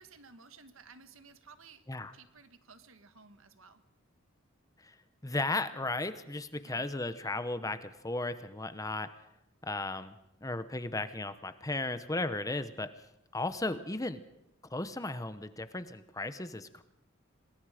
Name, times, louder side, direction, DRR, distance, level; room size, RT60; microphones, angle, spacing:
voice 1, 0.0-1.8 2.1-3.8 6.6-6.8, right 4 dB, 80° right, 10 dB, 1.5 m, -55 dB
voice 2, 5.2-9.1 9.6-10.2 10.4-12.9 13.3-14.2 14.7-16.8, left 2 dB, 15° left, 12 dB, 0.9 m, -35 dB
27.5 x 20.0 x 5.0 m, 0.85 s
head